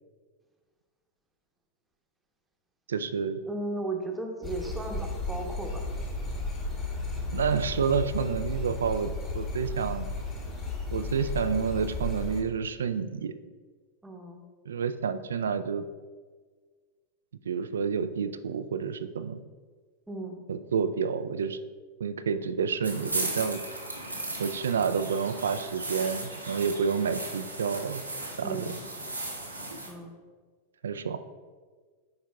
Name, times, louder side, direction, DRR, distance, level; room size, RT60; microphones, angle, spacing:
voice 1, 2.9-3.4 7.3-10.1 10.9-13.3 14.7-15.9 17.5-19.4 20.5-21.6 22.0-23.6 24.4-28.0 28.4-28.7 30.8-31.2, right 6 dB, 65° right, 12 dB, 0.3 m, -29 dB
voice 2, 3.5-5.8 14.0-14.4 20.1-20.4 28.4-28.8 29.9-30.1, right 2 dB, 10° right, 2 dB, 0.9 m, -35 dB
sound 1, 4.4-12.4, left 2 dB, 30° left, 1.5 m, -34 dB
sound 2, 22.8-29.9, right 2 dB, 85° right, 0.9 m, -36 dB
10.0 x 4.6 x 2.3 m, 1.5 s
figure-of-eight pair, 90°, 0 cm